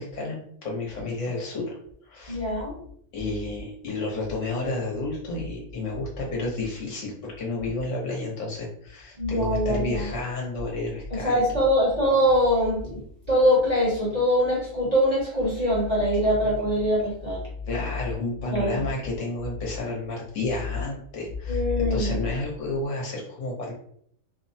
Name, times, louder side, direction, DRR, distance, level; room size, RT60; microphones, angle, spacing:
voice 1, 0.0-1.7 2.1-2.4 3.1-11.6 17.7-23.7, left 2 dB, 70° left, -3 dB, 1.1 m, -31 dB
voice 2, 2.3-2.8 9.2-10.1 11.1-13.0 13.3-17.4 18.5-18.9 21.5-22.2, equal, 35° right, -6 dB, 0.8 m, -23 dB
2.8 x 2.0 x 2.6 m, 0.65 s
omnidirectional pair, 1.4 m